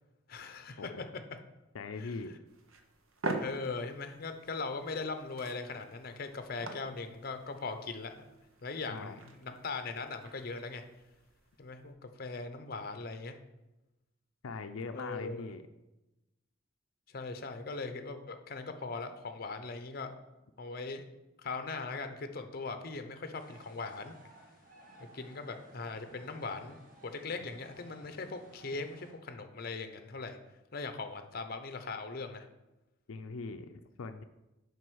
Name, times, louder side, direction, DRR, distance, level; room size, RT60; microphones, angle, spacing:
voice 1, 0.3-1.1 2.0-2.2 3.4-8.3 8.6-10.8 11.6-13.4 14.9-15.5 17.1-20.1 20.6-21.1 21.4-24.1 25.1-30.4 30.7-32.5, left 3 dB, 45° left, 8 dB, 0.7 m, -40 dB
voice 2, 1.7-2.3 8.9-9.2 14.4-15.6 33.1-34.2, left 4 dB, 85° left, 7 dB, 0.5 m, -41 dB
sound 1, 2.5-11.9, right 2 dB, 80° right, 0.9 m, -45 dB
sound 2, 23.3-29.1, right 1 dB, 40° right, 1.8 m, -57 dB
7.7 x 5.3 x 6.2 m, 1.0 s
head